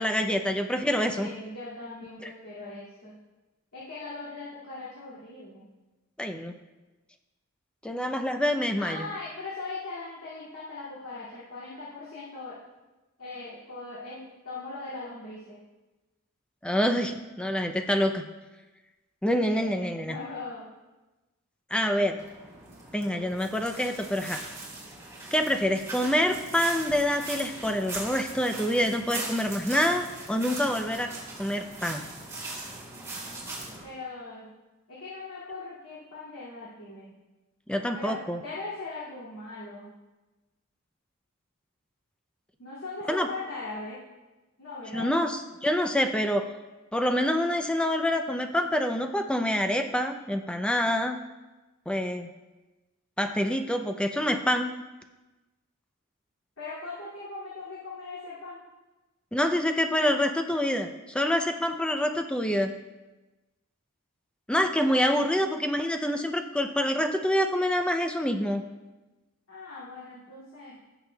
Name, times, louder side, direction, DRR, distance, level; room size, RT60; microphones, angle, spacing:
voice 1, 0.0-1.3 2.2-2.3 6.2-6.6 7.8-9.0 16.6-18.2 19.2-20.2 21.7-22.2 22.9-24.4 25.3-31.1 31.4-32.1 37.7-38.4 43.1-43.3 44.9-46.4 46.9-51.2 51.9-52.3 53.2-54.7 59.3-62.7 64.5-68.6, equal, 5° left, 6 dB, 0.4 m, -26 dB
voice 2, 1.2-3.2 3.7-5.7 8.8-12.6 13.2-15.6 19.4-20.7 33.8-34.5 34.9-37.2 37.9-39.9 42.6-44.0 44.6-45.1 56.6-58.6 69.5-70.8, left 3 dB, 85° left, -10 dB, 2.3 m, -40 dB
sound 1, 22.2-33.8, right 2 dB, 15° right, 2.5 m, -40 dB
17.0 x 7.0 x 2.3 m, 1.1 s
head